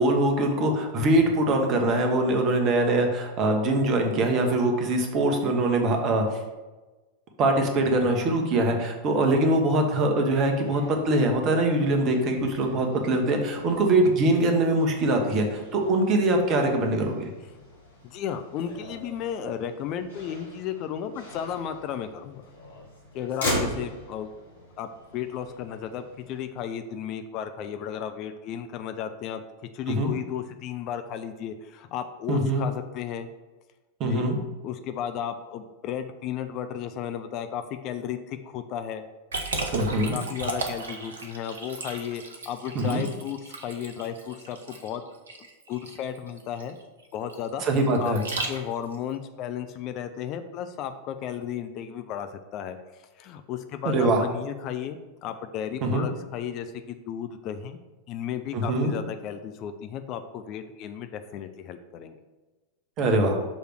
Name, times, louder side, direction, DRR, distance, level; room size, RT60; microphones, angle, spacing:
voice 1, 0.0-6.4 7.4-17.3 29.9-30.1 32.3-32.7 34.0-34.4 39.7-40.2 42.7-43.0 47.6-48.2 53.8-54.3 55.8-56.1 58.5-58.9 63.0-63.4, right 1 dB, 35° right, 3 dB, 1.1 m, -23 dB
Motor vehicle (road), 10.6-26.4, left 1 dB, 70° left, 1.6 m, -39 dB
voice 2, 18.0-22.4 23.1-24.3 24.8-29.4 29.7-33.3 34.1-34.3 34.6-39.0 40.1-45.0 45.7-46.8 47.1-47.6 48.0-48.1 48.5-52.8 53.2-57.8 58.1-62.2, left 9 dB, 40° left, 8 dB, 0.4 m, -34 dB
Liquid, 39.3-49.0, right 3 dB, 65° right, 0.9 m, -35 dB
6.2 x 3.4 x 6.0 m, 1.2 s
figure-of-eight pair, 90°, 0 cm